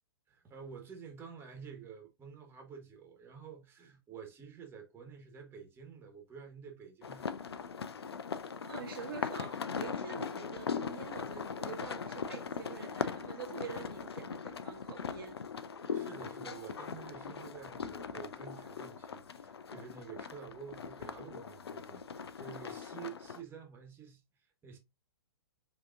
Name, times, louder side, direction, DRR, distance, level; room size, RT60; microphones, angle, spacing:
voice 1, 0.3-7.5 15.9-24.2 24.6-24.8, right 6 dB, 15° right, 1.2 m, -49 dB
sound 1, 7.0-23.4, left 6 dB, 80° left, 0.5 m, -40 dB
voice 2, 8.6-15.4, right 7 dB, 65° right, 0.9 m, -46 dB
4.8 x 2.9 x 2.4 m
hypercardioid pair, 115°, 13 cm